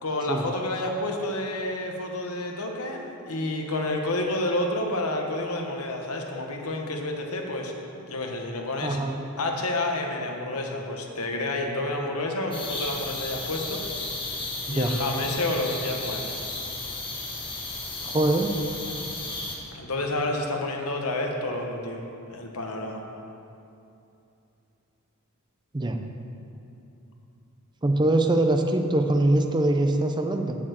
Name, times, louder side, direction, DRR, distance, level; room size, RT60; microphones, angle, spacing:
voice 1, 0.0-7.7 8.1-9.0 9.4-13.8 14.7-16.3 19.7-22.0 22.3-23.0, left 2 dB, 75° left, 2 dB, 1.3 m, -29 dB
voice 2, 8.8-9.1 14.7-14.9 18.0-18.5 25.7-26.0 27.8-30.6, right 1 dB, 20° right, 5 dB, 0.6 m, -23 dB
sound 1, 12.5-19.5, left 2 dB, 20° left, 1.5 m, -34 dB
7.2 x 7.0 x 7.8 m, 2.8 s
head